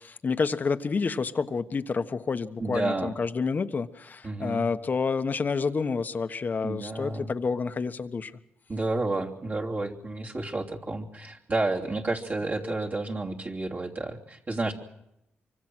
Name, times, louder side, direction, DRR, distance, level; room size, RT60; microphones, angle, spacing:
voice 1, 0.0-8.3 12.6-12.8, left 5 dB, 45° left, 10 dB, 1.3 m, -29 dB
voice 2, 2.6-3.1 4.2-4.7 6.6-7.3 8.7-14.7, right 2 dB, 40° right, -2 dB, 3.1 m, -31 dB
25.0 x 24.5 x 6.3 m, 0.83 s
cardioid pair, 70°, 4 cm